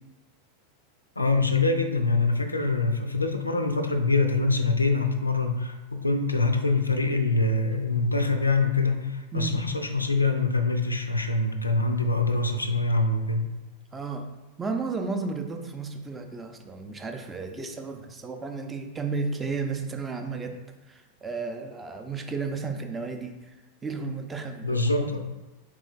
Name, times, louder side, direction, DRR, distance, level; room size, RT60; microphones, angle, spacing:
voice 1, 1.2-13.4 24.6-25.2, left 3 dB, 80° left, 6 dB, 0.4 m, -24 dB
voice 2, 13.9-14.3 14.6-20.5 20.9-23.6 23.8-25.2, right 4 dB, 15° right, 5 dB, 0.5 m, -33 dB
3.7 x 3.1 x 3.9 m, 1.1 s
figure-of-eight pair, 90°, 0 cm